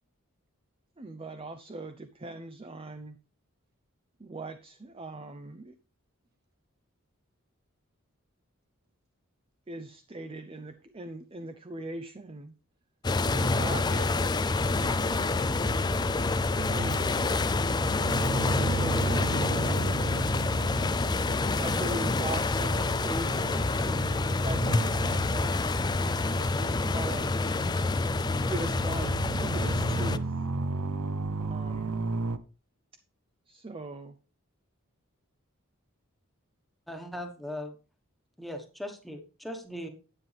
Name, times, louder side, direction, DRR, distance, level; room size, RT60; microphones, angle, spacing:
voice 1, 1.0-3.2 4.2-5.7 9.7-12.5 13.4-13.8 14.5-14.7 16.5-17.3 18.5-19.3 21.6-25.6 26.2-27.4 28.3-30.3 31.4-32.0 33.5-34.2, right 2 dB, 25° right, 0.6 m, -40 dB
sound 1, 13.0-30.2, left 3 dB, 20° left, 0.4 m, -27 dB
voice 2, 13.3-15.7, right 1 dB, 45° right, 1.8 m, -41 dB
sound 2, 14.7-32.4, right 3 dB, 90° right, 0.8 m, -36 dB
sound 3, 14.8-21.0, left 4 dB, 65° left, 2.0 m, -51 dB
voice 3, 36.9-37.8 38.4-39.9, left 1 dB, ahead, 1.3 m, -39 dB
9.8 x 9.2 x 3.4 m
head